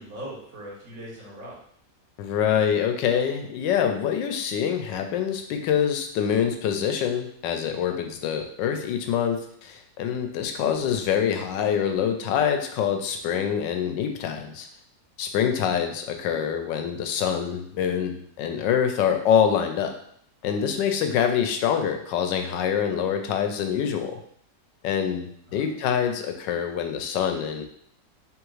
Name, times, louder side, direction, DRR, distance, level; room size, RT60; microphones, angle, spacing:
voice 1, 0.0-1.6 15.5-15.8 25.5-25.7, equal, 75° right, -6 dB, 2.2 m, -40 dB
voice 2, 2.2-14.7 15.2-19.9 20.4-24.2 24.8-27.6, left 8 dB, 85° left, 5 dB, 1.2 m, -25 dB
3.5 x 3.5 x 3.1 m, 0.66 s
omnidirectional pair, 1.9 m